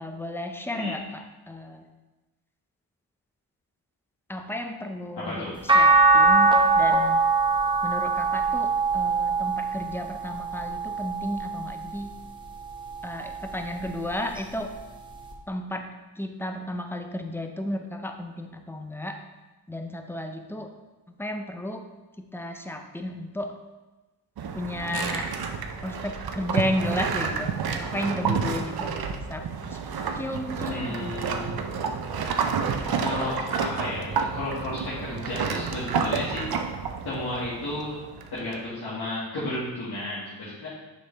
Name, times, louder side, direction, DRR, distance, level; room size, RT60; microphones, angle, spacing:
voice 1, 0.0-1.9 4.3-5.5 5.7-7.2 7.8-12.1 13.0-14.8 15.5-15.9 16.2-19.2 19.7-20.7 21.2-21.9 22.2-23.5 24.5-25.3 25.8-27.5 27.8-28.9 29.3-29.8 30.2-31.4, left 1 dB, 5° left, 5 dB, 0.5 m, -33 dB
voice 2, 5.2-5.6 30.7-31.7 33.0-36.5 37.0-38.0 38.3-40.7, left 1 dB, 65° left, -10 dB, 1.8 m, -33 dB
sound 1, 5.7-12.0 12.6-13.9 15.3-15.4, right 3 dB, 10° right, 0.8 m, -23 dB
sound 2, 24.4-38.5, right 6 dB, 65° right, 0.6 m, -30 dB
6.8 x 5.3 x 3.3 m, 1.1 s
wide cardioid pair, 115°, 40 cm